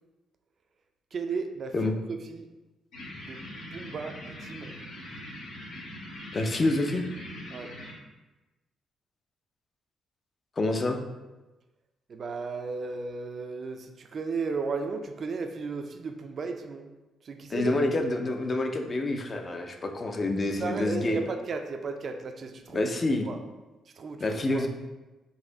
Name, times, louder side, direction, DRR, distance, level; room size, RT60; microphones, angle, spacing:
voice 1, 1.1-2.5 3.2-3.4 3.7-4.7 7.5-7.7 12.1-16.9 17.2-18.1 20.6-22.9 23.3-23.4 24.0-24.2 24.5-24.7, right 4 dB, 50° right, 5 dB, 0.4 m, -35 dB
sound 1, 2.9-7.9, left 1 dB, 85° left, 1.1 m, -42 dB
voice 2, 6.3-7.0 10.6-11.0 17.5-21.2 22.7-23.3 24.2-24.7, left 2 dB, 35° left, 5 dB, 0.5 m, -27 dB
4.1 x 2.7 x 3.8 m, 1.1 s
cardioid pair, 90°, 0 cm